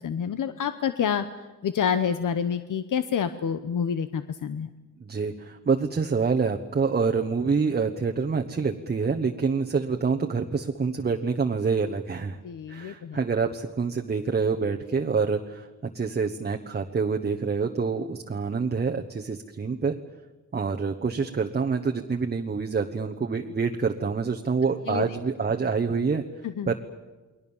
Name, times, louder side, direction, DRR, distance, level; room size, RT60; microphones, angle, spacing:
voice 1, 0.0-4.7 12.4-13.2 24.9-25.2 26.4-26.8, left 7 dB, 85° left, 11 dB, 1.0 m, -28 dB
voice 2, 5.0-12.4 12.7-15.7 15.9-20.0 20.5-26.3 26.7-26.8, right 5 dB, 30° right, 3 dB, 1.1 m, -26 dB
29.5 x 22.0 x 7.2 m, 1.2 s
wide cardioid pair, 175°, 31 cm